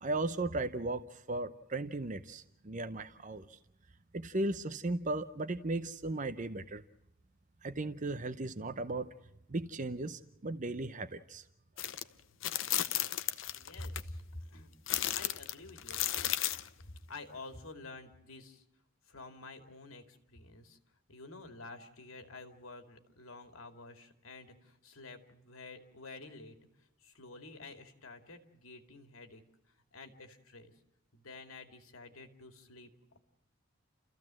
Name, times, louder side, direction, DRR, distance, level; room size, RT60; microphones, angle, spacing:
voice 1, 0.0-3.6 4.1-6.8 7.6-9.1 9.5-11.4 11.8-11.9, right 2 dB, 40° right, 10 dB, 0.7 m, -36 dB
sound 1, 11.8-12.0 12.4-14.0 14.9-16.7, left 13 dB, 65° left, 0.8 m, -34 dB
voice 2, 13.5-14.7 15.1-16.3 17.1-18.6 19.1-20.8 21.1-26.6 27.0-29.4 29.9-30.7 31.1-32.9, left 2 dB, 85° left, 7 dB, 2.3 m, -49 dB
30.0 x 15.0 x 7.5 m, 0.88 s
head